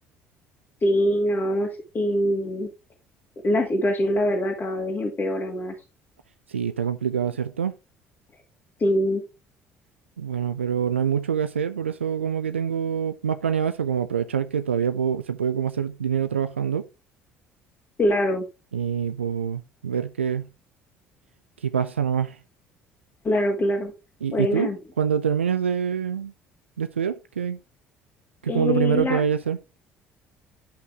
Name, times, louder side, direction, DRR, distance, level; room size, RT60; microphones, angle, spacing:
voice 1, 0.8-2.7 3.4-5.8 8.8-9.2 18.0-18.5 23.2-23.9 24.3-24.8 28.5-29.2, left 1 dB, 35° left, 2.1 m, -23 dB
voice 2, 6.5-7.7 10.2-16.9 18.7-20.5 21.6-22.4 24.2-24.7 25.0-26.3 26.8-27.6 28.4-29.6, right 7 dB, 85° right, 0.4 m, -25 dB
10.0 x 5.7 x 3.5 m
figure-of-eight pair, 55°, 6 cm